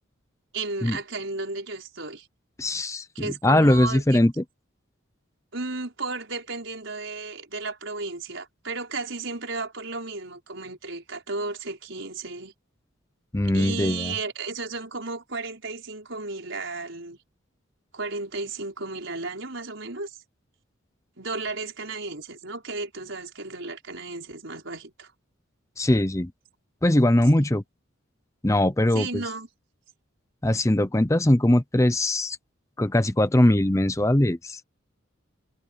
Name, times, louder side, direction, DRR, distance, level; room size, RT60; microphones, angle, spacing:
voice 1, 0.5-2.3 3.2-4.2 5.5-12.5 13.5-17.2 17.9-20.2 21.2-25.1 28.9-29.5, right 3 dB, 70° right, 5.1 m, -34 dB
voice 2, 2.6-4.4 13.3-14.1 25.8-26.3 26.8-27.6 28.4-29.2 30.4-32.4 32.8-34.6, left 1 dB, 15° left, 0.7 m, -21 dB
head